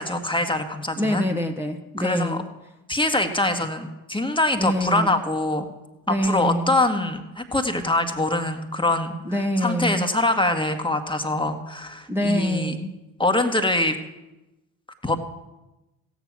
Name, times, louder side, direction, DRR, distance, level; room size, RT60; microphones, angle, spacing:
voice 1, 0.0-1.2 2.0-2.4 2.9-5.7 6.1-9.2 9.6-12.8 13.2-14.0 15.0-15.2, left 2 dB, 10° left, 5 dB, 1.8 m, -24 dB
voice 2, 1.0-2.4 4.6-5.1 6.1-6.7 9.2-10.1 12.1-12.9, equal, 5° right, 1 dB, 1.6 m, -25 dB
16.0 x 9.3 x 6.2 m, 0.99 s
hypercardioid pair, 50°, 47 cm